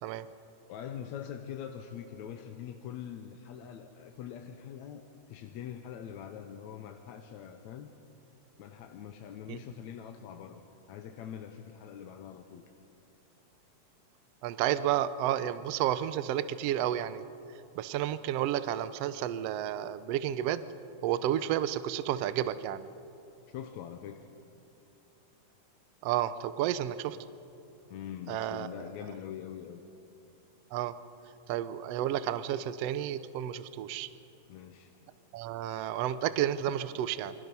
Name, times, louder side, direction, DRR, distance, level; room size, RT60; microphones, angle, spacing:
voice 1, 0.7-5.0 5.3-7.9 8.6-12.6 23.5-24.3 27.9-29.8 34.5-35.0, left 9 dB, 75° left, 5 dB, 2.1 m, -43 dB
voice 2, 14.4-17.2 17.8-20.6 21.0-22.9 26.0-27.2 28.3-28.7 30.7-30.9 31.5-34.1 35.3-37.3, right 11 dB, 75° right, 13 dB, 1.5 m, -31 dB
27.5 x 24.5 x 5.5 m, 2.8 s
omnidirectional pair, 3.4 m